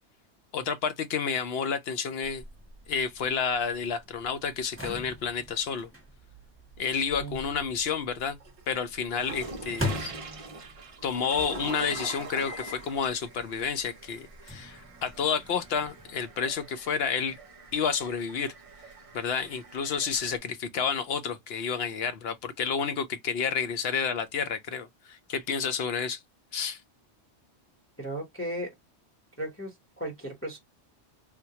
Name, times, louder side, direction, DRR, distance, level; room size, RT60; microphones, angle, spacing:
voice 1, 0.5-2.4 2.9-5.9 6.8-8.4 8.7-10.1 11.0-17.4 17.7-18.5 19.1-26.2 26.5-26.8, left 6 dB, 65° left, 0.7 m, -30 dB
sound 1, 2.4-8.3 9.4-10.8 11.9-12.9 13.4-13.5 14.5-16.1, left 1 dB, 10° right, 1.1 m, -39 dB
sound 2, 6.7-7.6 8.1-20.4, right 3 dB, 45° right, 0.5 m, -44 dB
voice 2, 28.0-28.7 29.4-30.6, right 1 dB, 10° left, 0.8 m, -36 dB
3.6 x 2.1 x 2.8 m
omnidirectional pair, 1.2 m